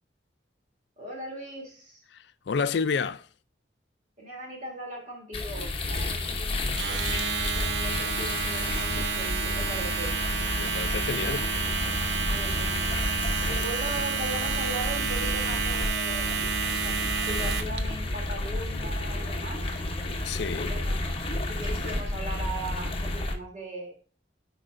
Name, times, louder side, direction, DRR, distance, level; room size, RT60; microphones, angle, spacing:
voice 1, 1.0-2.0 4.2-10.1 12.2-12.8 13.5-16.5 16.8-19.7 20.5-21.0 21.5-24.0, right 1 dB, 45° right, 2.9 m, -39 dB
voice 2, 2.1-3.3 10.5-11.5 20.2-20.7, left 5 dB, 70° left, 0.4 m, -30 dB
sound 1, 5.3-23.4, left 1 dB, 30° left, 0.9 m, -31 dB
Domestic sounds home sounds, 6.7-17.8, right 5 dB, 70° right, 0.8 m, -30 dB
13.5 x 4.8 x 2.5 m
head